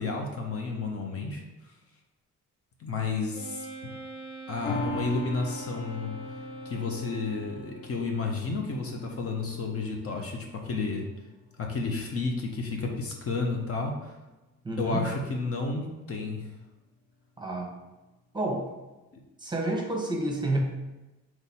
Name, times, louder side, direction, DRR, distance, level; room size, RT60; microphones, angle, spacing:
voice 1, 0.0-1.4 2.8-3.7 4.5-6.2 6.6-11.1 11.6-14.1 14.8-16.5, left 4 dB, 50° left, 1 dB, 0.8 m, -31 dB
Wind instrument woodwind instrument, 3.3-8.0, right 2 dB, 75° left, 1.5 m, -42 dB
sound 1, 4.6-11.3 11.8-11.9, left 2 dB, 30° left, 0.4 m, -39 dB
voice 2, 14.6-15.0 17.4-17.7 18.3-18.7 19.4-20.6, right 2 dB, 15° right, 0 dB, 1.0 m, -29 dB
3.9 x 3.1 x 4.1 m, 1.1 s
cardioid pair, 90°, 30 cm